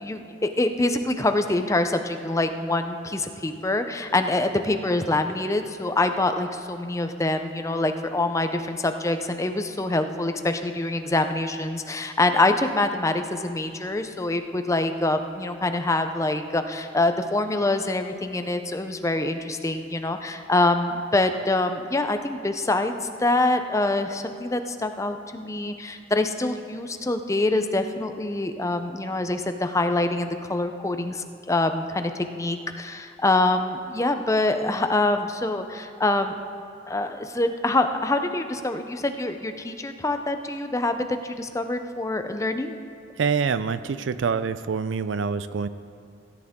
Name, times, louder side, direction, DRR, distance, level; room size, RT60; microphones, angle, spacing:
voice 1, 0.0-22.9 23.2-36.3 36.9-42.8, left 2 dB, 15° left, 7 dB, 0.5 m, -25 dB
voice 2, 43.2-45.7, right 5 dB, 75° right, 14 dB, 0.4 m, -26 dB
17.0 x 11.0 x 3.6 m, 2.5 s
head